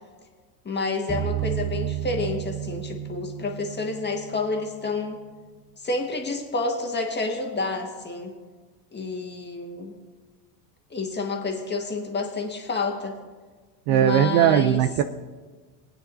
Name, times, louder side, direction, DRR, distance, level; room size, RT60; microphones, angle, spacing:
voice 1, 0.6-5.2 5.8-8.4 8.9-9.9 10.9-13.2 13.9-14.8, left 3 dB, 20° left, 1 dB, 1.6 m, -29 dB
sound 1, 1.1-4.8, right 10 dB, 5° right, 1.3 m, -31 dB
voice 2, 13.9-15.0, right 10 dB, 60° right, 11 dB, 0.7 m, -19 dB
18.5 x 9.1 x 2.7 m, 1.4 s
hypercardioid pair, 90°, 50 cm